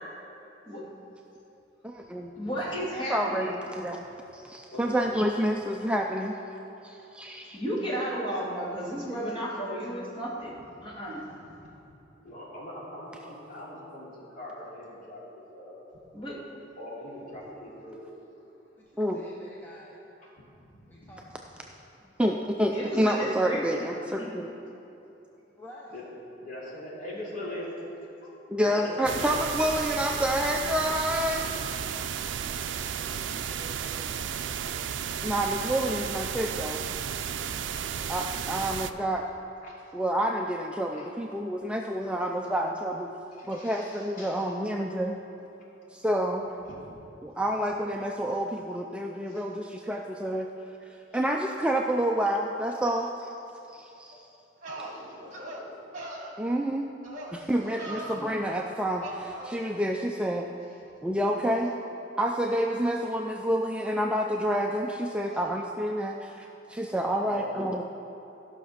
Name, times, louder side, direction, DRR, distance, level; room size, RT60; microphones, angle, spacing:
voice 1, 1.8-2.3 3.1-4.1 4.3-6.4 6.8-7.6 19.0-19.3 22.2-24.5 28.5-31.6 35.2-36.8 38.1-39.2 39.9-43.1 43.5-45.2 45.9-46.5 47.2-50.5 51.1-53.3 53.7-54.2 56.4-56.9 57.3-60.5 61.0-61.7 62.2-67.8, equal, 5° right, 1 dB, 0.4 m, -28 dB
voice 2, 2.4-3.5 7.5-10.6 10.8-11.3 16.1-16.4 22.7-23.6 24.0-24.3, equal, 30° left, -6 dB, 2.4 m, -33 dB
voice 3, 4.7-5.0 11.1-11.8 12.1-15.8 16.7-18.1 20.2-20.3 20.7-21.2 25.9-26.0 26.4-27.8 28.2-28.3 28.6-29.4 39.6-39.9 40.9-41.1 43.3-44.5 46.7-46.8 47.3-47.4 49.3-49.4 51.1-51.2 54.7-55.8 57.4-58.3 65.3-65.4 67.2-67.5, left 1 dB, 50° left, -6 dB, 2.9 m, -43 dB
voice 4, 18.8-20.0 20.9-21.3 21.6-21.7 25.6-26.0 32.8-34.5, equal, 10° left, -5 dB, 0.9 m, -50 dB
sound 1, 29.0-38.9, right 8 dB, 75° right, 0.4 m, -33 dB
sound 2, 54.1-54.2 54.6-54.9 55.3-55.6 55.9-56.3 57.0-57.3 57.6-58.3 59.0-59.5, right 1 dB, 45° right, 1.3 m, -39 dB
14.0 x 6.0 x 5.8 m, 2.9 s
head